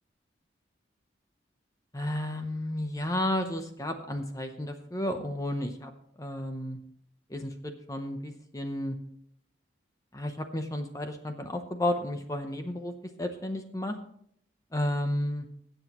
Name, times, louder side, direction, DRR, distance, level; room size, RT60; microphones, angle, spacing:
voice 1, 1.9-5.9 6.2-6.8 7.3-9.0 10.1-14.0 14.7-15.5, left 1 dB, 20° left, 6 dB, 0.7 m, -32 dB
20.5 x 7.9 x 3.0 m, 0.67 s
head